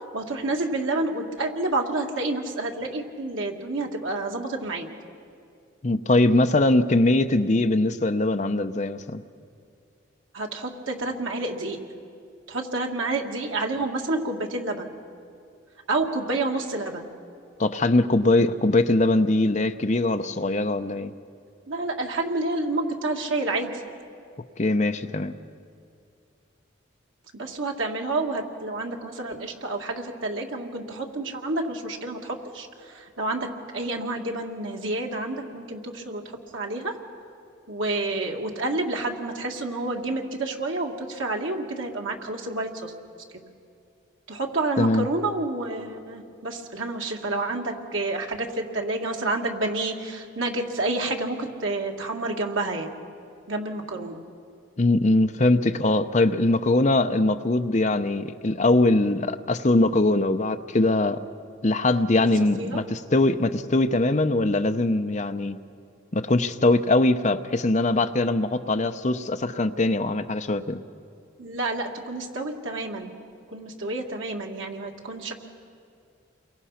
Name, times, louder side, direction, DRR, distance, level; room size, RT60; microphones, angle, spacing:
voice 1, 0.1-4.9 10.3-11.8 12.5-14.9 15.9-17.1 21.7-23.8 27.3-33.5 33.7-37.0 37.7-42.9 44.3-53.0 53.5-54.2 62.2-62.3 62.6-62.8 71.4-73.1 73.5-75.3, right 2 dB, 85° right, 1 dB, 2.2 m, -29 dB
voice 2, 5.8-9.2 17.6-21.1 24.6-25.3 44.8-45.1 54.8-61.2 61.6-65.6 66.1-70.8, left 2 dB, 35° left, 8 dB, 0.7 m, -22 dB
29.0 x 23.0 x 5.8 m, 2.4 s
head